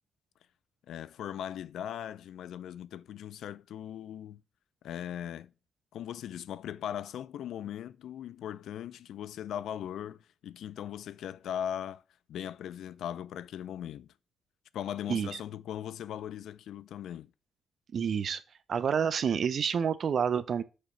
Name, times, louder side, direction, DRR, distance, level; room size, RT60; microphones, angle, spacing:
voice 1, 0.9-4.4 4.8-5.5 5.9-12.0 12.3-14.1 14.7-17.3, left 10 dB, 85° left, 0.3 m, -39 dB
voice 2, 15.1-15.4 17.9-18.4 18.7-20.6, right 7 dB, 55° right, 0.5 m, -28 dB
6.5 x 3.0 x 5.4 m
cardioid pair, 120°, 0 cm